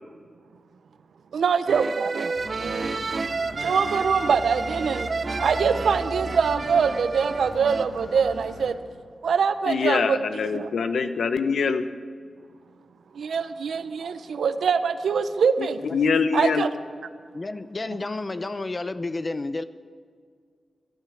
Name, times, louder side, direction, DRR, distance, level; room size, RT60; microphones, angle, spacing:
voice 1, 1.3-2.3 2.6-3.0 3.6-5.1 5.4-8.8 9.2-10.2 10.5-10.7 13.1-15.8 16.3-16.7, right 6 dB, 80° right, 11 dB, 0.6 m, -24 dB
sound 1, 1.7-7.9, right 4 dB, 40° right, 0.4 m, -30 dB
sound 2, 2.3-8.7, left 1 dB, 50° left, 4.1 m, -39 dB
voice 2, 9.7-11.8 15.6-16.6, left 5 dB, 75° left, 11 dB, 0.8 m, -24 dB
voice 3, 17.3-19.6, left 2 dB, 25° left, 13 dB, 0.5 m, -31 dB
14.0 x 12.0 x 6.4 m, 2.1 s
wide cardioid pair, 150°, 0 cm